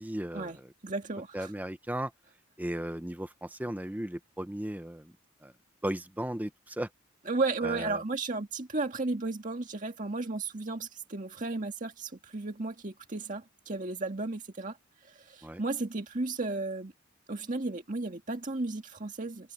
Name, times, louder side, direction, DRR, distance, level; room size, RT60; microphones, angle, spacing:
voice 1, 0.0-0.7 1.3-2.1 2.6-5.1 5.4-5.5 5.8-6.9 7.6-8.0 15.4-15.6, right 1 dB, 10° right, 0.9 m, -36 dB
voice 2, 0.8-1.5 7.3-14.8 15.0-16.9 17.3-19.5, right 3 dB, 40° right, 1.9 m, -34 dB
open air
head